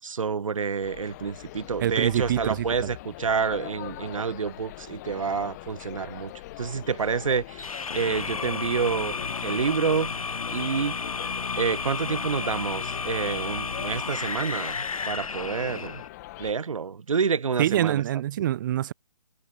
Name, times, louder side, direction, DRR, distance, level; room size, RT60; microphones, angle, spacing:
voice 1, 0.0-6.3 6.6-9.1 9.4-10.1 10.5-11.0 11.6-16.0 16.4-18.0, right 6 dB, 65° right, 6.5 m, -28 dB
sound 1, 0.8-16.5, left 18 dB, 30° left, 6.1 m, -42 dB
voice 2, 1.8-2.9 17.6-18.9, right 12 dB, 35° right, 1.5 m, -25 dB
sound 2, 7.6-16.1, left 5 dB, 75° left, 5.2 m, -32 dB
hypercardioid pair, 150°, 18 cm